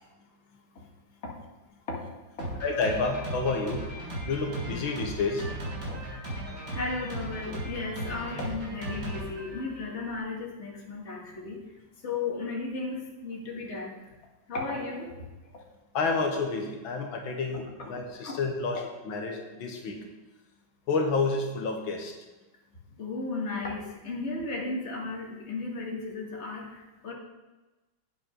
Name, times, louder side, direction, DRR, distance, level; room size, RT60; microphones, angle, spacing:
Drum kit, 2.4-10.2, right 1 dB, 55° right, 4.8 m, -37 dB
voice 1, 2.6-3.9 4.3-5.5 15.9-20.0 20.9-22.1, left 4 dB, 85° left, 3 dB, 1.9 m, -29 dB
voice 2, 6.7-11.6 12.0-13.9 14.5-15.1 18.2-18.4 18.7-18.8 23.0-27.1, left 3 dB, 35° left, -2 dB, 2.0 m, -35 dB
8.8 x 7.7 x 5.2 m, 1.1 s
omnidirectional pair, 2.1 m